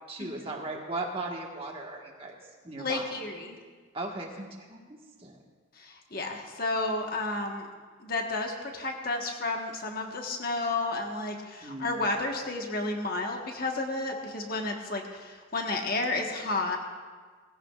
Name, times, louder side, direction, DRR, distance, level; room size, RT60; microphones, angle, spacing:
voice 1, 0.1-2.3 2.6-3.1 3.9-5.4 11.6-12.0, right 2 dB, 30° right, 0 dB, 1.5 m, -37 dB
voice 2, 2.8-3.6 5.8-7.7 8.0-16.8, left 2 dB, 50° left, 2 dB, 1.3 m, -32 dB
19.5 x 15.5 x 2.4 m, 1.5 s
head